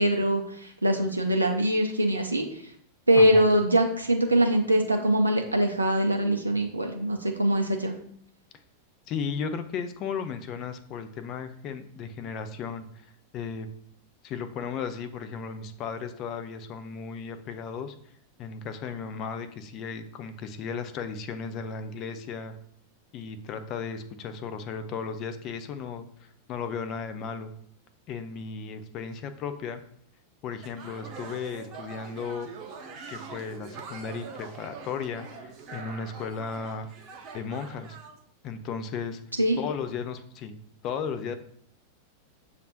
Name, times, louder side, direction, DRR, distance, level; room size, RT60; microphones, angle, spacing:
voice 1, 0.0-2.6 3.1-7.9 39.4-39.6, right 1 dB, 80° right, 3 dB, 0.4 m, -23 dB
voice 2, 3.2-3.5 9.1-13.1 13.3-13.7 14.2-17.9 18.4-22.5 23.1-27.5 28.1-29.8 30.4-32.5 33.1-36.9 37.3-38.0 38.4-39.2 39.6-40.5 40.8-41.4, left 6 dB, 35° left, 9 dB, 0.4 m, -35 dB
sound 1, 30.6-38.2, right 5 dB, 35° right, 0.7 m, -43 dB
6.6 x 2.5 x 2.7 m, 0.64 s
figure-of-eight pair, 90°, 0 cm